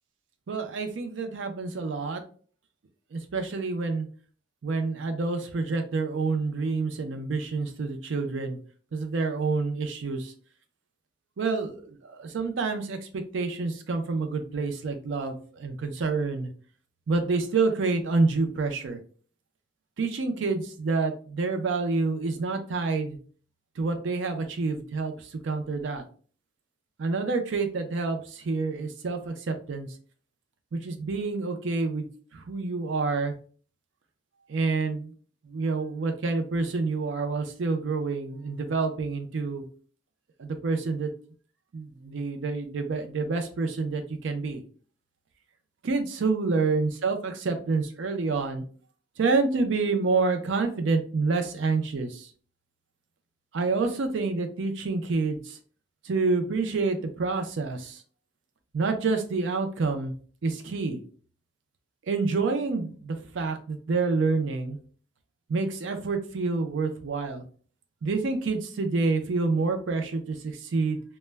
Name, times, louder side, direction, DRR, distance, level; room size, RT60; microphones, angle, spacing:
voice 1, 0.5-2.2 3.1-4.1 4.6-8.6 8.9-10.3 11.4-16.5 17.1-19.0 20.0-23.2 23.8-25.1 25.4-26.0 27.0-29.9 30.7-32.1 32.3-33.3 34.5-35.1 35.5-39.6 40.4-41.1 41.7-44.6 45.8-48.6 49.2-52.3 53.5-55.6 56.0-58.0 58.7-60.1 60.4-61.0 62.1-64.8 65.5-67.4 68.0-71.0, right 3 dB, 80° right, 6 dB, 0.5 m, -28 dB
2.1 x 2.1 x 3.2 m, 0.42 s
head